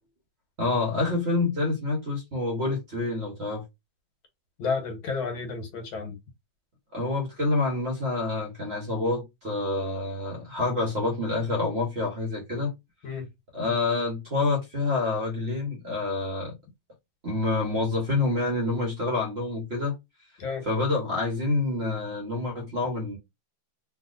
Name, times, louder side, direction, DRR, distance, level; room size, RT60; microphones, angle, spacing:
voice 1, 0.6-3.6 6.9-12.7 13.5-16.5 17.2-20.0 20.6-23.2, left 3 dB, 40° right, 1.0 m, -27 dB
voice 2, 4.6-6.2 13.0-13.3 20.4-20.6, left 5 dB, 75° left, 1.8 m, -31 dB
3.4 x 2.8 x 2.5 m
omnidirectional pair, 2.2 m